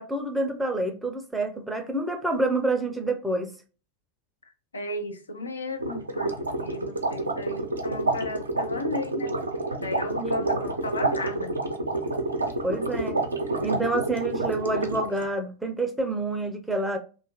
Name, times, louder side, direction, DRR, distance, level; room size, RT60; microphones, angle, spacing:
voice 1, 0.0-3.5 10.2-10.3 12.6-13.2 13.6-17.0, right 2 dB, 5° right, 0.5 m, -28 dB
voice 2, 4.7-9.4 9.8-11.5, left 2 dB, 75° left, 0.5 m, -34 dB
sound 1, 5.8-15.2, right 2 dB, 75° right, 0.5 m, -29 dB
2.8 x 2.3 x 2.9 m
figure-of-eight pair, 90°, 0 cm